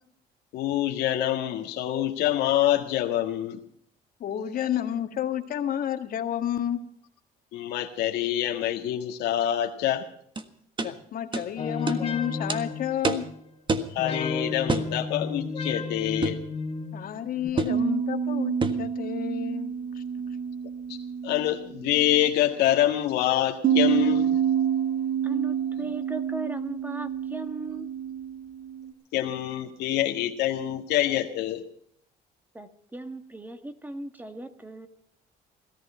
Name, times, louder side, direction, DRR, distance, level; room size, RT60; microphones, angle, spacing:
voice 1, 0.5-3.6 7.5-10.0 13.9-16.4 20.9-21.0 21.2-24.4 29.1-31.6, left 12 dB, 85° left, 3 dB, 1.7 m, -26 dB
voice 2, 4.2-6.8 10.8-13.2 16.9-20.0, left 10 dB, 55° left, 7 dB, 1.8 m, -30 dB
sound 1, 10.4-10.5 10.8-10.9 11.3-11.5 11.9-12.0 12.5-12.6 13.0-13.3 13.7-13.9 14.7-14.9 16.2-16.5 17.6-17.8 18.6-18.9, right 3 dB, 30° right, 1.6 m, -27 dB
sound 2, 11.6-13.5 14.0-17.5, left 4 dB, 35° left, 2.4 m, -33 dB
sound 3, 17.7-22.3 23.6-28.9, right 8 dB, 55° right, 2.7 m, -28 dB
voice 3, 25.2-27.9 32.5-34.9, right 2 dB, 10° right, 9 dB, 1.7 m, -38 dB
17.5 x 14.0 x 5.6 m, 0.66 s
cardioid pair, 110°, 17 cm